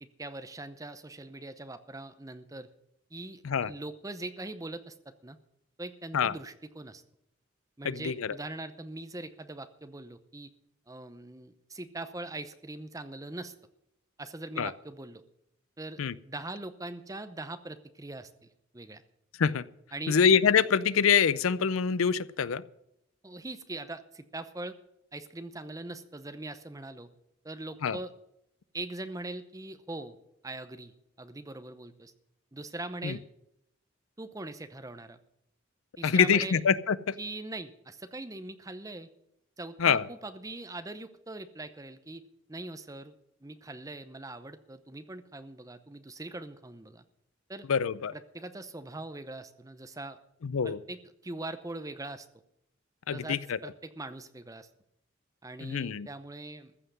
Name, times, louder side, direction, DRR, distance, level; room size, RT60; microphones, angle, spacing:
voice 1, 0.0-2.7 3.1-5.4 5.8-7.0 7.8-10.5 10.9-13.5 14.2-15.2 15.8-16.0 16.2-19.0 19.9-20.2 23.2-24.8 25.1-27.1 27.4-28.1 28.7-30.2 30.4-32.1 32.5-33.2 34.2-35.2 36.0-36.6 37.2-39.1 39.6-42.2 42.5-43.1 43.4-47.0 47.5-47.7 48.1-50.2 50.6-51.0 51.2-52.3 53.1-54.7 55.4-56.7, right 2 dB, 15° right, 10 dB, 0.7 m, -41 dB
voice 2, 7.8-8.4 14.6-14.7 16.0-16.1 19.4-19.7 20.1-22.6 27.8-28.0 33.0-33.2 36.0-37.1 39.8-40.1 47.7-48.1 50.4-50.8 53.1-53.6 55.6-56.1, left 6 dB, 85° left, 18 dB, 0.5 m, -25 dB
14.5 x 5.7 x 9.7 m, 0.80 s
head